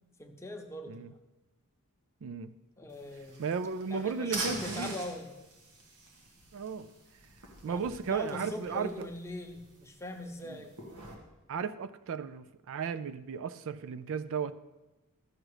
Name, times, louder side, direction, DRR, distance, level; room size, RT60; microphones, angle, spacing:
voice 1, 0.2-1.1 2.8-3.4 3.9-5.3 7.6-10.7, left 1 dB, 10° left, 3 dB, 0.9 m, -41 dB
voice 2, 2.2-2.6 3.4-5.0 6.5-6.9 7.6-9.1 10.4-10.6 11.5-14.5, right 6 dB, 60° right, 12 dB, 0.4 m, -35 dB
sound 1, 2.9-11.1, right 2 dB, 80° right, 1.6 m, -44 dB
12.5 x 6.3 x 4.8 m, 1.1 s
head